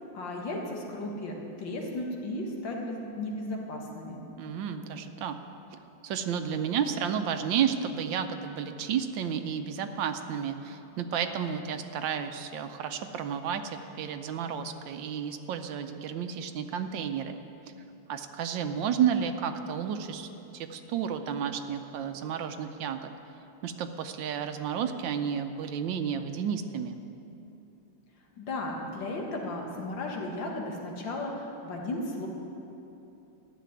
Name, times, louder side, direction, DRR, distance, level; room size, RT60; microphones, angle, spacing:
voice 1, 0.1-4.2 28.4-32.3, left 2 dB, 75° left, 0 dB, 2.3 m, -35 dB
voice 2, 4.4-5.4 6.0-17.4 18.1-23.1 23.6-27.0, right 8 dB, 85° right, 8 dB, 1.4 m, -32 dB
12.5 x 6.7 x 9.4 m, 2.9 s
omnidirectional pair, 2.1 m